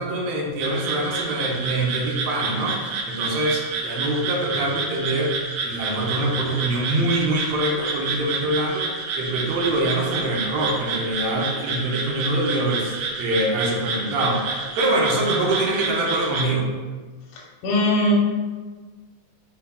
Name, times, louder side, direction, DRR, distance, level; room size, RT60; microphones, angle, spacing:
voice 1, 0.0-2.8 3.1-5.3 5.6-8.9 9.2-14.4 14.8-16.7, right 2 dB, 75° right, -1 dB, 1.7 m, -24 dB
sound 1, 0.6-16.5, right 4 dB, 90° right, 2.1 m, -29 dB
voice 2, 17.3-18.1, equal, 80° left, -2 dB, 2.3 m, -21 dB
5.4 x 4.3 x 2.2 m, 1.4 s
omnidirectional pair, 3.4 m